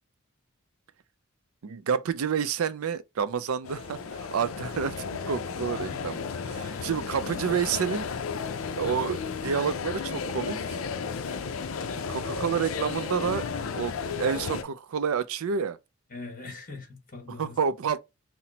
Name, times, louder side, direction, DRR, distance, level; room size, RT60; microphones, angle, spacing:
voice 1, 1.6-4.9 5.3-8.1 8.8-10.8 11.8-13.5 13.8-15.8 17.4-18.0, right 7 dB, 80° right, 0.4 m, -29 dB
sound 1, 3.6-14.6, left 5 dB, 75° left, 0.5 m, -33 dB
voice 2, 5.8-6.1 6.6-6.9 16.1-17.6, left 3 dB, 40° left, 1.6 m, -42 dB
5.7 x 2.1 x 2.8 m
head